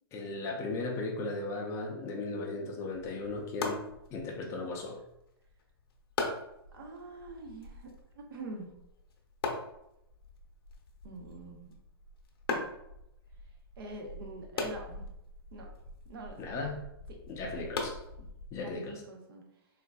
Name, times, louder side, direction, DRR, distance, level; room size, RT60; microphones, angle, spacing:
voice 1, 0.1-3.8 4.1-5.0 16.4-16.8 17.3-18.0 18.5-19.0, left 3 dB, 20° left, 0 dB, 0.5 m, -36 dB
sound 1, 2.9-18.8, left 3 dB, 65° left, 0.7 m, -41 dB
voice 2, 6.7-8.7 11.0-11.8 13.8-15.0 15.5-15.7 16.1-16.4 17.5-17.7 18.2-18.3 18.6-19.4, right 2 dB, 65° right, 1 dB, 0.8 m, -45 dB
3.7 x 2.5 x 2.2 m, 0.84 s
hypercardioid pair, 140°, 13 cm